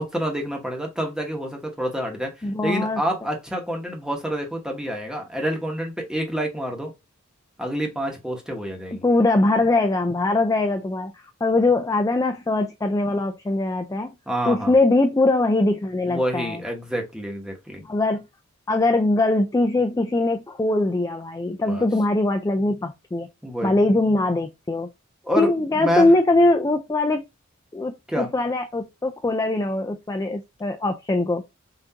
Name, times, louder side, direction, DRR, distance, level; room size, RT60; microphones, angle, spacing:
voice 1, 0.0-6.9 7.6-9.0 14.3-14.7 16.1-17.8 21.6-21.8 23.4-23.8 25.2-26.1 28.1-28.3, equal, 5° right, 1.1 m, -28 dB
voice 2, 2.4-3.0 8.9-14.1 14.5-16.6 17.8-18.2 18.7-23.3 23.6-24.9 25.4-27.2 27.7-31.4, left 2 dB, 15° left, 0.3 m, -21 dB
5.7 x 2.6 x 2.8 m
head